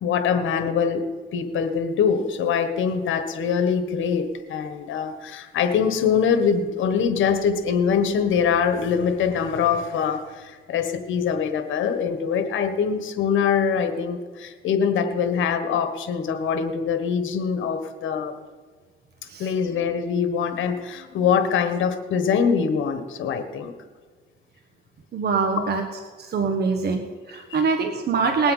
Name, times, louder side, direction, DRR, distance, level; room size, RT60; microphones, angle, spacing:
voice 1, 0.0-1.0 1.3-18.4 19.4-23.7 27.5-27.6 28.4-28.5, left 6 dB, 75° left, 8 dB, 1.5 m, -23 dB
voice 2, 25.1-25.8 26.2-28.5, right 5 dB, 55° right, 5 dB, 1.2 m, -24 dB
20.0 x 8.0 x 5.7 m, 1.5 s
cardioid pair, 90°, 20 cm